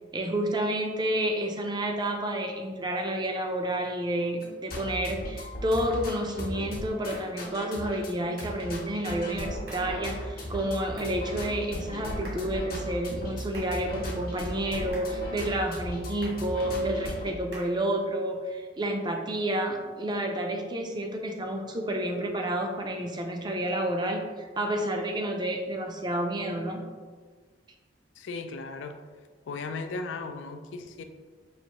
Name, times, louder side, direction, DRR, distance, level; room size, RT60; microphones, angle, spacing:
voice 1, 0.1-26.8, right 1 dB, 25° right, 3 dB, 0.4 m, -30 dB
sound 1, 4.4-17.3, equal, 55° left, 0.8 m, -37 dB
sound 2, 5.8-6.0 7.1-7.4 8.4-8.6 9.7-10.0 11.0-11.2 12.2-12.6 13.5-13.9 14.9-15.2 16.2-16.5 17.5-17.8, right 1 dB, 70° right, 1.4 m, -47 dB
voice 2, 28.2-29.0 29.5-31.0, left 3 dB, 90° left, 7 dB, 0.4 m, -36 dB
5.5 x 2.6 x 2.9 m, 1.5 s
head